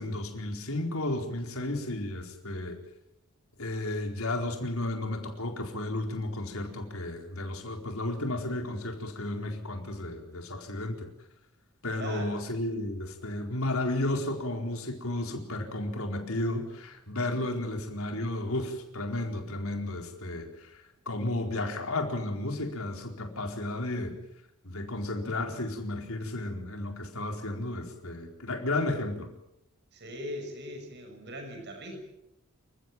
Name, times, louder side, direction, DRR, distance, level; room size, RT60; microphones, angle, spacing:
voice 1, 0.0-2.8 3.6-11.1 11.8-24.1 24.6-29.3, left 1 dB, 70° left, 3 dB, 4.4 m, -33 dB
voice 2, 12.0-12.5 29.9-32.0, equal, 50° right, 4 dB, 6.7 m, -40 dB
28.5 x 15.5 x 9.1 m, 0.85 s
head